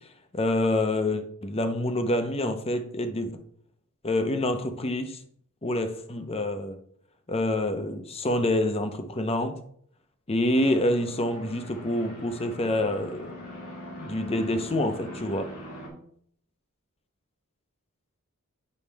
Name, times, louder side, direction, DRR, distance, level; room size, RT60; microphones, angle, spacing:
voice 1, 0.3-3.3 4.0-5.2 5.6-6.8 7.3-9.6 10.3-13.3 14.0-15.5, left 1 dB, 25° left, 0.7 m, -27 dB
sound 1, 10.5-15.9, left 1 dB, 80° left, 2.7 m, -42 dB
9.3 x 5.6 x 3.4 m
head